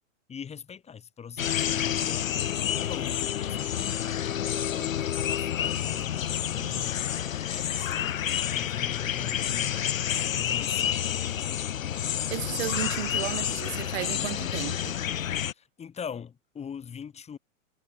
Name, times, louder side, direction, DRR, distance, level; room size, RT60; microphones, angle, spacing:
voice 1, 0.3-2.4 2.8-4.0 4.7-7.1 7.5-8.1 8.5-9.8 10.3-11.3 15.5-17.4, left 7 dB, 15° left, 3.0 m, -42 dB
sound 1, 1.4-15.5, left 10 dB, 90° left, 1.1 m, -29 dB
voice 2, 12.3-15.0, right 18 dB, 50° right, 2.4 m, -34 dB
hypercardioid pair, 130°, 39 cm